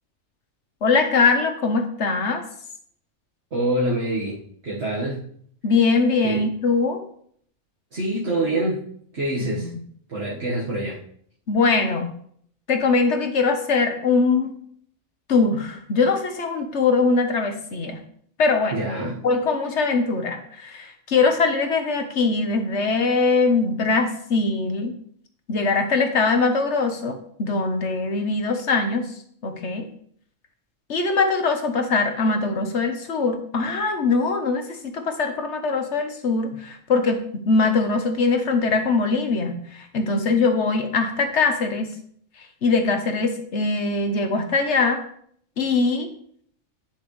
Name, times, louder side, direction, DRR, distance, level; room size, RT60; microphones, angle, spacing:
voice 1, 0.8-2.4 5.6-7.0 9.4-9.6 11.5-12.1 12.7-14.5 15.3-18.0 18.4-18.8 19.2-24.9 25.5-29.1 29.4-29.9 30.9-41.9 42.6-45.0 45.6-46.1, left 4 dB, 60° left, 6 dB, 1.3 m, -22 dB
voice 2, 3.5-4.4 4.6-5.2 6.2-6.4 7.9-8.9 9.1-9.7 10.1-11.0 18.7-19.2, right 1 dB, 55° right, -6 dB, 1.8 m, -25 dB
10.0 x 6.8 x 3.2 m, 0.62 s
omnidirectional pair, 1.4 m